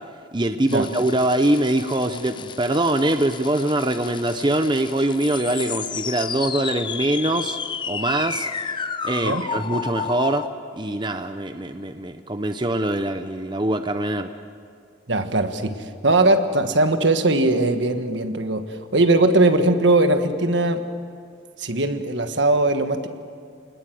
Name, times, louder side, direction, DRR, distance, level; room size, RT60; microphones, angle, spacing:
voice 1, 0.3-7.6 7.9-8.5 9.0-10.5 10.7-14.3, right 1 dB, 25° right, 8 dB, 0.7 m, -23 dB
sound 1, 0.7-10.5, left 6 dB, 25° left, 0.6 m, -32 dB
voice 2, 15.1-15.7 16.0-20.8 21.6-23.1, right 2 dB, 65° right, 7 dB, 1.5 m, -20 dB
28.5 x 20.0 x 7.8 m, 2.2 s
head